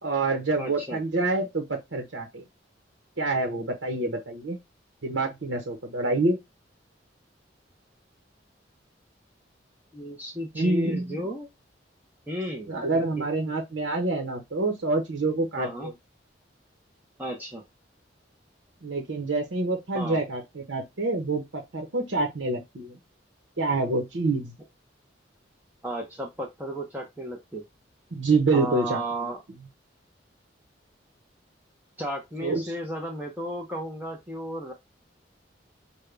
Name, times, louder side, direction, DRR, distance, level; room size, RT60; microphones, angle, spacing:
voice 1, 0.0-2.4 3.2-4.6 5.0-6.4 10.5-11.3 12.7-15.9 18.8-23.0 23.6-24.5 28.1-29.3 32.4-32.7, right 3 dB, 75° right, 0.9 m, -27 dB
voice 2, 0.6-1.0 9.9-11.5 12.3-13.2 15.6-15.9 17.2-17.6 19.9-20.2 25.8-27.6 28.5-29.4 32.0-34.7, equal, 10° right, 0.7 m, -34 dB
5.3 x 2.2 x 3.3 m
head